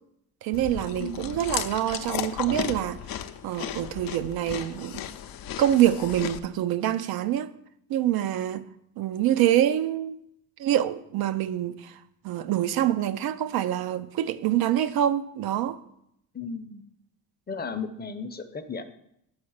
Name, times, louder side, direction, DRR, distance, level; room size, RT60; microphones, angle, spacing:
voice 1, 0.4-3.0 3.4-5.0 5.6-7.5 7.9-8.7 9.0-10.2 10.6-11.9 12.2-15.8, right 11 dB, 80° right, 0.6 m, -25 dB
Chewing mastication, 0.5-6.4, left 10 dB, 70° left, 0.6 m, -35 dB
voice 2, 1.0-1.3 16.3-16.9 17.5-18.9, left 4 dB, 25° left, 0.6 m, -35 dB
5.8 x 5.7 x 6.4 m
cardioid pair, 100°, 36 cm